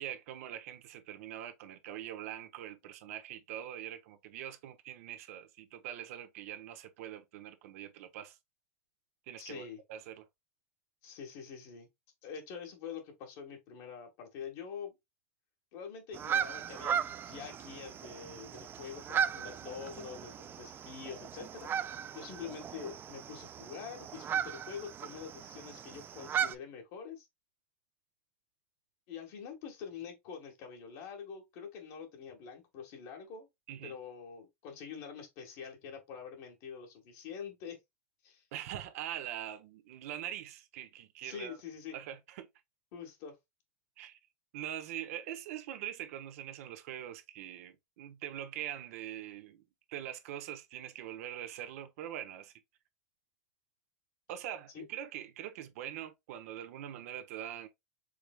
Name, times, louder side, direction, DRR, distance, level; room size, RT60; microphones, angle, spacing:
voice 1, 0.0-8.4 9.3-10.2 33.7-33.9 38.5-41.6 41.9-42.5 44.0-44.2 44.5-52.5 54.3-57.7, right 11 dB, 70° right, 0.8 m, -43 dB
voice 2, 9.4-9.8 11.0-11.9 12.2-14.9 15.7-21.7 22.1-27.2 29.1-33.5 33.8-37.8 38.2-38.4 41.2-42.0 42.9-43.4 54.7-54.8, left 6 dB, 60° left, 1.5 m, -45 dB
sound 1, 16.1-26.6, right 8 dB, 25° right, 0.3 m, -37 dB
4.8 x 3.4 x 2.3 m
hypercardioid pair, 115°, 8 cm